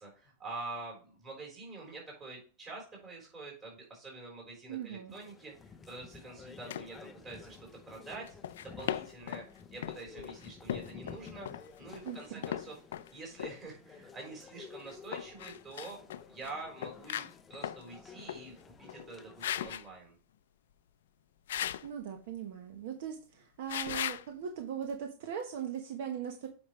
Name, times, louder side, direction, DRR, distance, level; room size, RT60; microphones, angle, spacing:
voice 1, 0.0-7.6 7.9-8.3 8.6-11.5 11.8-16.0 16.3-20.1, right 3 dB, 20° right, -2 dB, 4.0 m, -46 dB
voice 2, 4.7-5.1 12.0-12.4 21.8-26.5, right 8 dB, 55° right, 4 dB, 1.1 m, -39 dB
sound 1, 5.1-19.7, left 5 dB, 10° left, 0.5 m, -53 dB
sound 2, 6.7-6.9 8.3-9.5 9.8-13.1 13.4-13.6 14.9-16.5 16.8-17.8 18.2-18.5 18.9-19.1 19.4-19.8 21.5-21.9 23.7-24.2, left 11 dB, 85° left, 0.4 m, -38 dB
8.7 x 5.3 x 3.2 m, 0.37 s
supercardioid pair, 175°, 0 cm